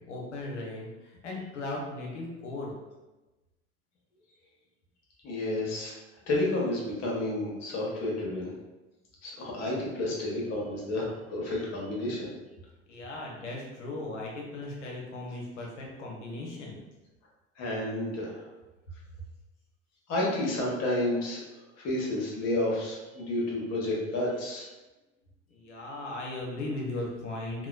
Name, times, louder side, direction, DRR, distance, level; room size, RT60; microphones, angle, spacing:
voice 1, 0.1-2.7 12.9-16.8 25.5-27.7, left 2 dB, 75° left, -2 dB, 0.7 m, -37 dB
voice 2, 5.2-5.9 6.3-8.5 9.2-12.3 17.6-18.4 20.1-21.4 21.8-24.7, left 1 dB, 45° left, -4 dB, 1.0 m, -30 dB
2.9 x 2.2 x 2.3 m, 1.1 s
figure-of-eight pair, 65°, 36 cm